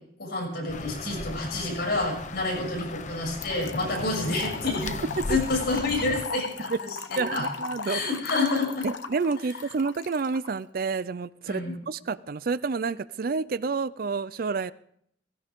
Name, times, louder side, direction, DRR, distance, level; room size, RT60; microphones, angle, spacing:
voice 1, 0.2-5.0 5.3-6.7 7.1-7.4 7.8-8.9 11.5-11.7, left 2 dB, 60° left, -1 dB, 6.8 m, -28 dB
sound 1, 0.7-6.3, left 3 dB, 40° left, 0.8 m, -37 dB
Trickle dribble / Fill (with liquid), 3.4-10.5, left 4 dB, 85° left, 1.0 m, -37 dB
voice 2, 7.2-8.0 8.8-14.7, right 4 dB, 50° right, 17 dB, 0.4 m, -29 dB
17.0 x 16.5 x 3.6 m, 0.69 s
head